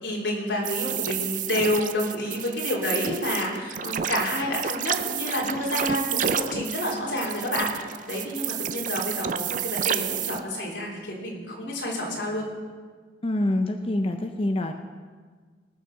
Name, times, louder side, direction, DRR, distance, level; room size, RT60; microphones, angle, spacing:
voice 1, 0.0-12.4, left 1 dB, 85° left, -2 dB, 3.4 m, -29 dB
sound 1, 0.6-10.4, right 9 dB, 45° right, 0.5 m, -30 dB
voice 2, 13.2-14.7, left 1 dB, 30° left, 5 dB, 0.6 m, -25 dB
19.5 x 6.5 x 6.4 m, 1.6 s
head